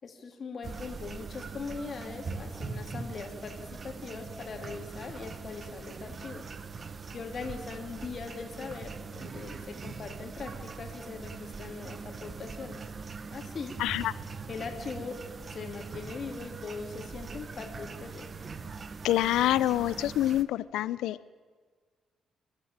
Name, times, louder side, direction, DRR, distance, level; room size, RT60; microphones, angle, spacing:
voice 1, 0.0-6.4 7.1-12.9 13.3-13.7 14.5-15.2 15.5-18.2, left 5 dB, 45° left, 3 dB, 3.4 m, -41 dB
sound 1, 0.6-20.4, right 4 dB, 40° right, 1.2 m, -42 dB
voice 2, 13.8-14.1 19.0-21.3, left 13 dB, 90° left, 18 dB, 0.7 m, -27 dB
27.0 x 12.5 x 9.0 m, 1.5 s
cardioid pair, 90°, 0 cm